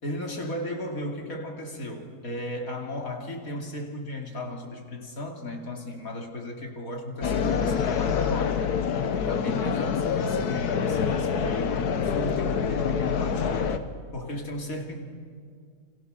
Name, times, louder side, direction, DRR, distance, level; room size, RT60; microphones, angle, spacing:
voice 1, 0.0-8.6 9.0-13.8 14.1-15.0, left 1 dB, 60° left, 2 dB, 3.3 m, -35 dB
sound 1, 7.2-13.8, left 6 dB, 80° left, 1.6 m, -26 dB
29.5 x 25.0 x 6.6 m, 2.1 s
omnidirectional pair, 1.6 m